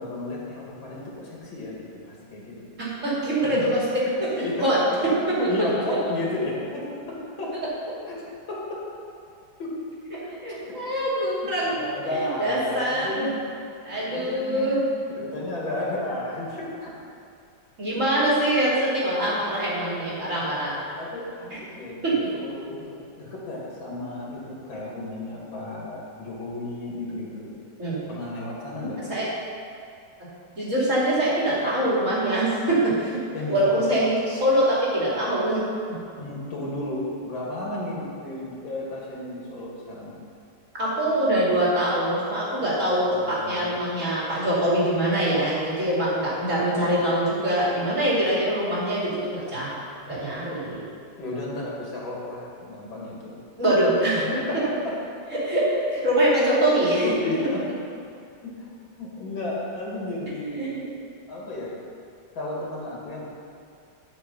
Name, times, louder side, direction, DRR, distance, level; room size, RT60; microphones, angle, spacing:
voice 1, 0.0-2.7 3.5-3.7 4.4-5.0 5.4-7.5 8.1-8.2 8.5-8.8 9.6-9.7 10.2-10.3 10.9-11.0 11.4-13.3 13.9-14.6 15.1-16.9 19.6-20.2 21.0-27.5 28.1-29.0 33.3-33.9 36.2-40.2 43.0-43.8 51.2-53.4 54.2-54.7 57.0-57.6 58.4-58.7 59.0-60.7 61.3-61.7 62.3-63.3, left 2 dB, 85° left, -4 dB, 2.9 m, -33 dB
voice 2, 2.8-4.3 4.6-5.4 10.1-11.9 12.1-13.3 13.8-14.8 15.1-15.2 17.8-20.8 21.5-21.6 22.0-22.2 27.8-28.0 29.1-29.3 30.6-33.2 33.5-35.6 40.8-49.8 50.1-50.8 53.6-54.2 55.3-57.1 60.6-60.8, right 1 dB, 40° right, -7 dB, 3.0 m, -24 dB
12.0 x 5.8 x 5.5 m, 2.5 s
omnidirectional pair, 2.1 m